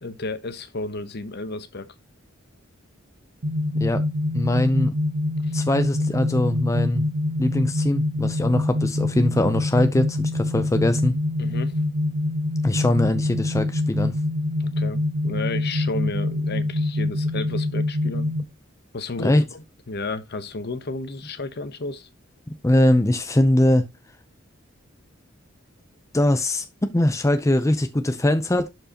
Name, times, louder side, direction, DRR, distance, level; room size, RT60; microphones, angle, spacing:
voice 1, 0.0-1.9 5.4-5.6 11.4-11.8 14.6-18.3 18.9-22.1, left 3 dB, 55° left, 1.0 m, -32 dB
sound 1, 3.4-18.4, left 1 dB, 70° right, 1.0 m, -25 dB
voice 2, 4.3-4.9 5.5-7.1 7.4-11.2 12.6-14.1 19.2-19.4 22.5-23.8 26.1-26.7 26.9-28.7, left 1 dB, 15° left, 0.6 m, -21 dB
11.5 x 4.7 x 2.9 m
head